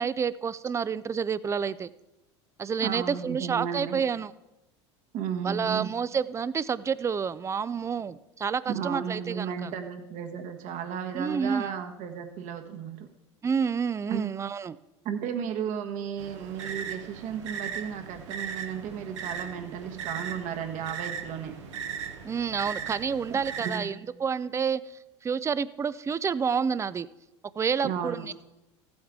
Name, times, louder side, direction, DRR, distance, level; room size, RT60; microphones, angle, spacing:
voice 1, 0.0-1.9 2.6-4.3 5.4-9.7 11.1-11.7 13.4-14.8 22.2-24.8 25.2-27.1 27.6-28.3, right 6 dB, 20° right, 17 dB, 0.4 m, -29 dB
voice 2, 2.8-4.0 5.1-5.9 8.7-13.1 14.1-14.3 15.0-21.5 23.6-23.9 27.8-28.3, right 8 dB, 55° right, 6 dB, 1.4 m, -34 dB
sound 1, 16.2-23.8, right 7 dB, 85° right, 1.3 m, -38 dB
15.0 x 8.7 x 3.7 m, 0.97 s
hypercardioid pair, 90°, 15 cm